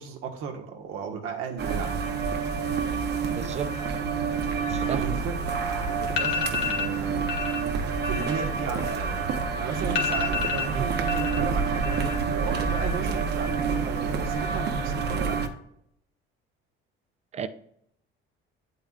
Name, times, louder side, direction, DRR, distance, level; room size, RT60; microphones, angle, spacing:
voice 1, 0.0-2.0 4.8-7.2 8.0-15.4, right 6 dB, 85° right, 1.5 m, -35 dB
sound 1, 1.6-15.5, right 5 dB, 55° right, 0.9 m, -28 dB
voice 2, 3.4-3.7 4.7-5.0 10.7-10.9 17.3-17.5, right 8 dB, 30° right, 0.5 m, -32 dB
sound 2, 5.7-5.8 6.1-6.9 7.3-7.6 7.9-9.4 9.6-9.7 10.0-11.4 11.7-12.3 12.6-13.1, left 7 dB, 75° left, 1.5 m, -30 dB
8.8 x 8.5 x 2.4 m
cardioid pair, 145°, 21 cm